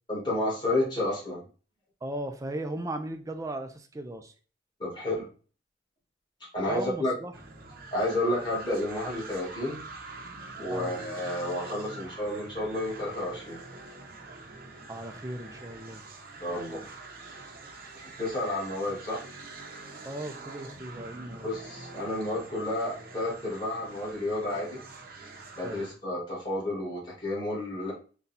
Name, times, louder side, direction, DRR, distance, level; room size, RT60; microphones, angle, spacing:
voice 1, 0.1-1.4 4.8-5.3 6.5-7.1 7.9-9.8 10.6-13.6 16.4-16.8 18.0-19.2 21.4-24.8 25.6-27.9, left 1 dB, 25° left, -6 dB, 1.7 m, -31 dB
voice 2, 2.0-4.3 6.7-7.3 10.7-11.0 14.9-16.1 16.5-16.9 20.0-21.5 25.6-25.9, right 1 dB, 15° right, 6 dB, 0.4 m, -37 dB
sound 1, 7.3-26.0, right 3 dB, 50° right, 0.7 m, -45 dB
4.0 x 2.3 x 4.0 m, 0.38 s
head